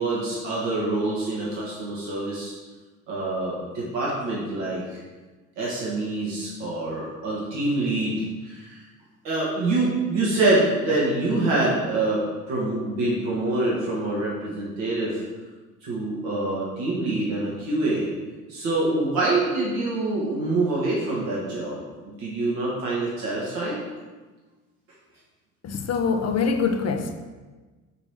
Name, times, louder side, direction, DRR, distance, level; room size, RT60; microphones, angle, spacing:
voice 1, 0.0-2.5 3.1-5.0 5.6-8.8 9.2-15.2 15.8-18.1 18.5-23.8, right 2 dB, 65° right, -6 dB, 1.8 m, -25 dB
voice 2, 25.6-27.1, left 5 dB, 35° left, 6 dB, 0.8 m, -24 dB
6.4 x 3.3 x 5.9 m, 1.3 s
figure-of-eight pair, 60°, 46 cm